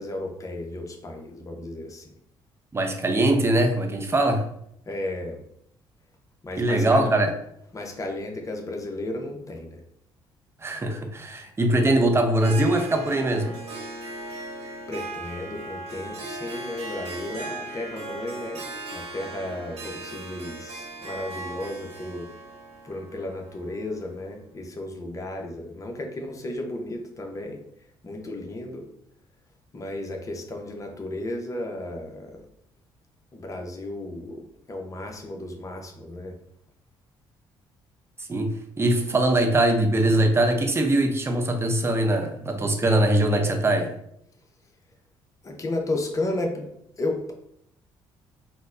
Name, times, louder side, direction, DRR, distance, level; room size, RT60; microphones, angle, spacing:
voice 1, 0.0-2.0 4.9-5.4 6.4-7.1 7.7-9.8 14.9-18.6 18.9-22.3 22.8-27.6 28.0-28.8 29.7-32.4 33.3-34.4 34.7-36.4 45.4-46.7 47.0-47.3, left 1 dB, 30° left, 3 dB, 0.7 m, -33 dB
voice 2, 2.7-4.4 6.6-7.3 10.6-13.5 38.3-38.5 38.8-43.9, right 1 dB, 25° right, 5 dB, 0.6 m, -22 dB
Harp, 12.4-24.2, right 2 dB, 70° right, 1.1 m, -38 dB
4.1 x 2.1 x 2.5 m, 0.73 s
supercardioid pair, 60°, 11 cm